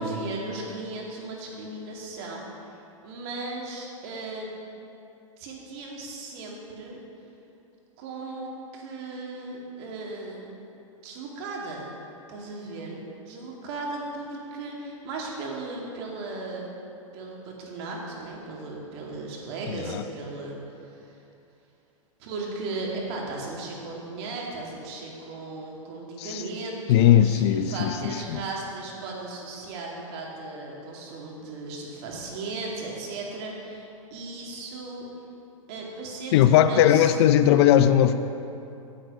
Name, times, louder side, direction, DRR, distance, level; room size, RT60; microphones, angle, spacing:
voice 1, 0.0-2.8 3.0-4.5 5.4-7.0 8.0-10.5 11.0-11.9 12.3-16.7 17.1-21.2 22.2-35.1 35.7-37.2, right 3 dB, 50° right, -2 dB, 2.3 m, -36 dB
voice 2, 26.9-28.4 36.3-38.1, left 11 dB, 50° left, 11 dB, 0.5 m, -19 dB
9.1 x 7.9 x 5.3 m, 2.7 s
hypercardioid pair, 120°, 17 cm